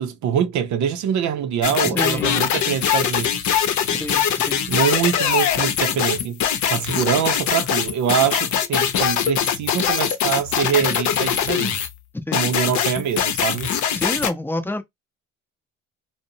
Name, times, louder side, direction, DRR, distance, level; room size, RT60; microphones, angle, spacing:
voice 1, 0.0-3.5 4.7-6.4 6.7-11.8 12.3-13.7, right 8 dB, 75° right, 0.5 m, -24 dB
sound 1, 1.6-11.9 12.3-14.3, left 9 dB, 70° left, 0.6 m, -22 dB
voice 2, 1.8-2.4 3.9-4.6 12.1-12.5 13.9-14.8, left 1 dB, 5° left, 0.6 m, -28 dB
2.5 x 2.0 x 2.6 m
cardioid pair, 90°, 30 cm